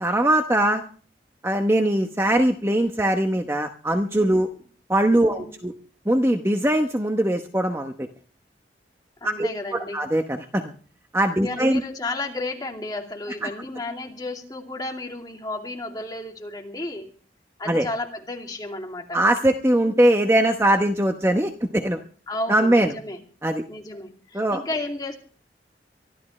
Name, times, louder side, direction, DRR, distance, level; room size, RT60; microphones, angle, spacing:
voice 1, 0.0-0.8 1.4-4.5 4.9-5.7 6.1-8.1 9.2-10.7 11.1-11.8 13.4-13.5 17.7-17.9 19.1-22.0 22.5-22.9 23.4-23.6 24.3-24.6, right 1 dB, 15° right, 5 dB, 0.9 m, -21 dB
voice 2, 5.3-5.7 9.2-10.0 11.4-17.1 17.6-19.2 19.8-19.9 22.3-23.2 23.7-25.2, left 2 dB, 20° left, 2 dB, 2.6 m, -33 dB
24.0 x 13.5 x 3.2 m, 0.42 s
head